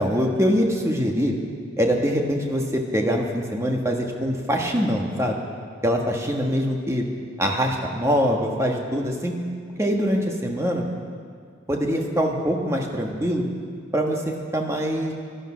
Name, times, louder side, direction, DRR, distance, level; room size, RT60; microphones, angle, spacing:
voice 1, 0.0-1.3 1.8-5.4 5.8-7.0 7.4-9.3 9.8-10.9 11.7-13.4 13.9-15.1, equal, 15° right, 1 dB, 1.4 m, -23 dB
16.0 x 12.0 x 6.2 m, 2.1 s
head